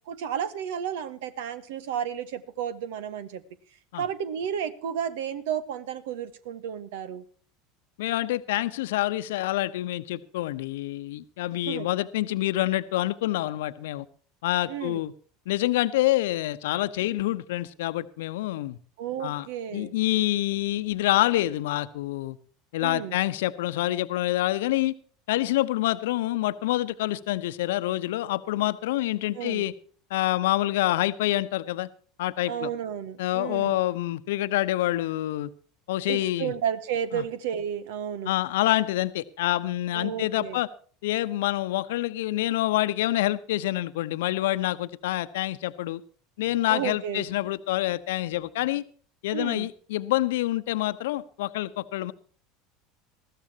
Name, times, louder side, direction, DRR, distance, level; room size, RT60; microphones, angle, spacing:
voice 1, 0.1-3.4 4.0-7.2 11.6-11.9 14.7-15.0 19.0-19.9 22.8-23.2 29.3-29.6 32.5-33.8 36.1-38.3 39.9-40.6 46.7-47.2 49.3-49.7, right 9 dB, 70° right, 14 dB, 1.5 m, -32 dB
voice 2, 8.0-14.1 14.4-15.1 15.5-18.8 19.2-19.5 19.7-22.4 22.7-24.9 25.3-29.7 30.1-31.9 32.2-32.7 33.2-35.5 35.9-36.5 37.1-37.2 38.2-40.7 41.0-46.0 46.4-48.8 49.2-52.1, left 16 dB, 70° left, 14 dB, 0.9 m, -27 dB
20.5 x 15.0 x 2.9 m, 0.43 s
hypercardioid pair, 75°, 0 cm